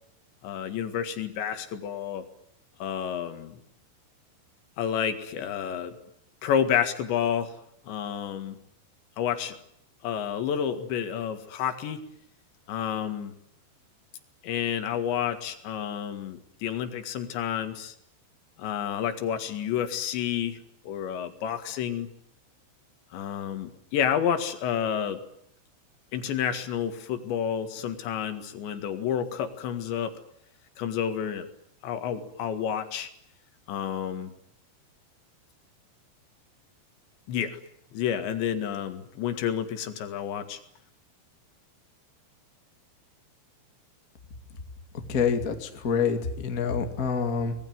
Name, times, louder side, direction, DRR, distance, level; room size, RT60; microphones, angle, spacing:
voice 1, 0.4-2.3 2.8-3.6 4.8-6.0 6.4-7.6 7.9-8.6 9.2-9.6 10.0-12.1 12.7-13.3 14.4-18.0 18.6-20.6 20.8-22.1 23.1-25.2 26.1-30.2 30.8-31.5 31.8-33.1 33.7-34.3 37.3-37.6 37.9-40.6, left 9 dB, 70° left, 8 dB, 4.0 m, -30 dB
voice 2, 45.1-47.5, left 6 dB, 30° left, 6 dB, 1.6 m, -26 dB
25.5 x 20.5 x 9.5 m, 0.73 s
omnidirectional pair, 5.5 m